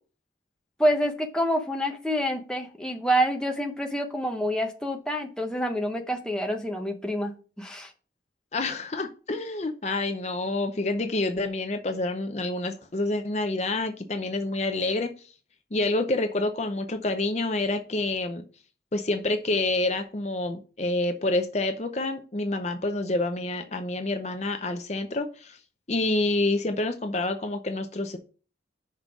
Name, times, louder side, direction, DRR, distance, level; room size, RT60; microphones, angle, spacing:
voice 1, 0.8-7.3 7.6-7.9, equal, 5° left, 2 dB, 0.9 m, -27 dB
voice 2, 8.5-15.1 15.7-18.4 18.9-25.6 25.9-28.2, left 2 dB, 35° left, 6 dB, 0.6 m, -28 dB
5.6 x 5.3 x 6.0 m, 0.37 s
head